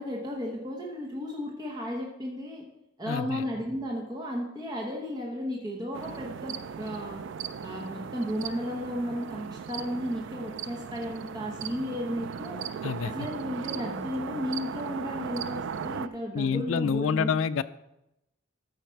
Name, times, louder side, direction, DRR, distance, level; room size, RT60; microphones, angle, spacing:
voice 1, 0.0-2.7 3.0-7.2 7.6-12.6 13.0-17.4, equal, 20° right, -2 dB, 1.0 m, -34 dB
voice 2, 3.1-3.4 12.8-13.1 16.3-17.6, left 6 dB, 85° left, 12 dB, 0.4 m, -27 dB
sound 1, 5.9-16.1, right 7 dB, 65° right, 0.3 m, -37 dB
13.0 x 4.8 x 4.6 m, 0.89 s
head